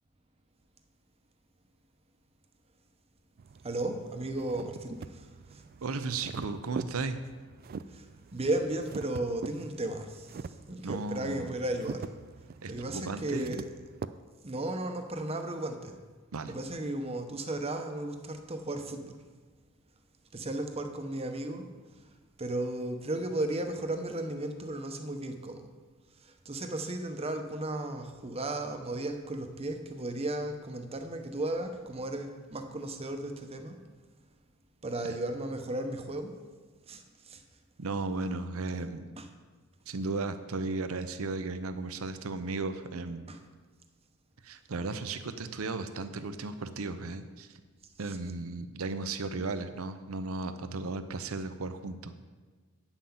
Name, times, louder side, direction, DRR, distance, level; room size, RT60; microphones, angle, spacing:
sound 1, 3.4-14.1, right 5 dB, 45° right, 0.3 m, -44 dB
voice 1, 3.6-5.6 7.9-8.1 8.3-10.4 10.7-12.1 12.7-13.6 14.4-16.0 16.5-19.2 20.3-21.7 22.4-25.7 26.2-33.8 34.8-36.3 36.9-37.4 39.2-39.3 43.3-43.4 48.1-48.2, right 1 dB, 30° right, 6 dB, 0.8 m, -35 dB
voice 2, 5.8-7.2 10.8-11.5 12.6-13.5 16.3-16.5 37.8-39.1 39.9-43.3 44.4-47.6 48.0-52.1, right 3 dB, 80° right, 10 dB, 0.7 m, -35 dB
8.9 x 5.8 x 7.1 m, 1.4 s
head